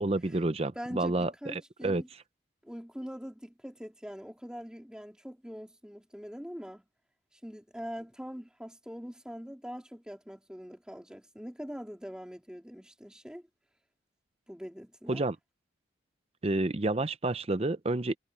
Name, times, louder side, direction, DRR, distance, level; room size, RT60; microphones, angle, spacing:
voice 1, 0.0-2.0 15.1-15.4 16.4-18.2, right 2 dB, 30° right, 0.6 m, -29 dB
voice 2, 0.8-2.1 2.6-6.8 7.3-13.4 14.5-15.2, equal, 5° right, 2.4 m, -43 dB
head